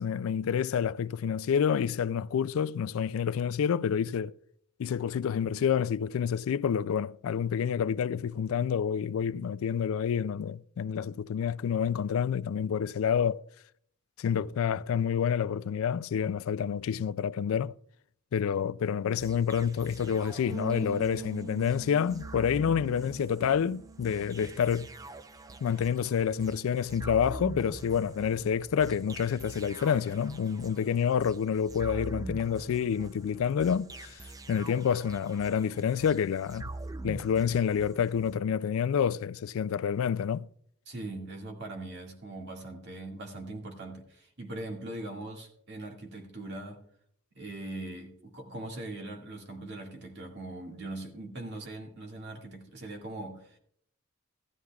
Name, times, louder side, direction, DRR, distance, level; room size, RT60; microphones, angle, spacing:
voice 1, 0.0-4.3 4.8-13.4 14.2-17.7 18.3-24.9 25.6-34.1 34.5-36.7 37.0-40.5, left 7 dB, 85° left, 0.3 m, -28 dB
sound 1, 19.2-38.4, right 2 dB, 15° right, 0.4 m, -44 dB
Bass guitar, 20.5-26.7, right 6 dB, 80° right, 4.7 m, -45 dB
voice 2, 40.9-46.8 47.3-53.6, right 2 dB, 55° right, 2.0 m, -41 dB
15.5 x 13.0 x 2.3 m
head